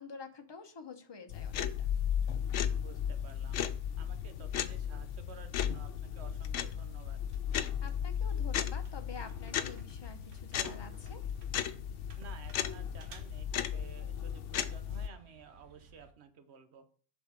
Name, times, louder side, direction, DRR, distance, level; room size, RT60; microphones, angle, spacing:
voice 1, 0.0-1.9 7.8-11.3, left 4 dB, 25° left, 6 dB, 0.8 m, -48 dB
sound 1, 1.3-15.1, left 9 dB, 85° left, 0.9 m, -35 dB
sound 2, 2.1-16.1, right 4 dB, 85° right, 1.4 m, -60 dB
voice 2, 2.7-3.6 4.0-7.3 12.2-16.8, right 6 dB, 65° right, 8 dB, 1.2 m, -53 dB
sound 3, 7.8-9.5 9.9-12.2 12.5-12.6 12.9-13.0 13.5-15.0 15.6-15.7, right 2 dB, 15° right, 0.9 m, -60 dB
7.2 x 4.3 x 5.8 m, 0.42 s
omnidirectional pair, 1.2 m